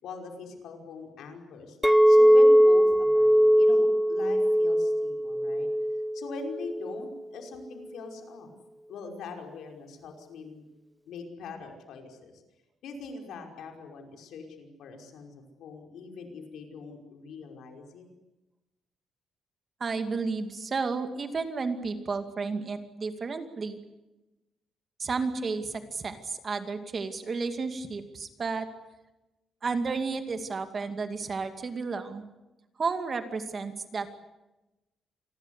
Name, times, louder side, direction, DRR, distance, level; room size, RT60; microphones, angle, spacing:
voice 1, 0.0-5.7 6.1-8.5 8.9-10.6 11.1-12.4 12.8-18.1, left 4 dB, 80° left, 3 dB, 5.5 m, -42 dB
Chink clink, 1.8-7.1, equal, ahead, 0.8 m, -21 dB
voice 2, 19.8-23.8 25.0-28.7 29.6-32.2 32.8-34.2, right 4 dB, 30° right, 7 dB, 2.4 m, -32 dB
27.5 x 21.0 x 8.3 m, 1.0 s
cardioid pair, 160°, 0 cm